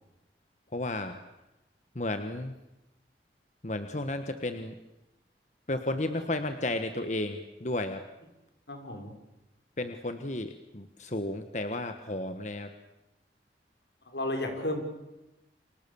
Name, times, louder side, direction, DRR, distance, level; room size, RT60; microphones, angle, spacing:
voice 1, 0.7-1.2 1.9-2.5 3.6-4.7 5.7-8.0 9.8-12.7, left 2 dB, 40° left, 8 dB, 1.4 m, -33 dB
voice 2, 8.7-9.1 14.0-14.8, left 1 dB, 80° left, 4 dB, 5.8 m, -33 dB
30.0 x 26.0 x 7.2 m, 0.96 s
head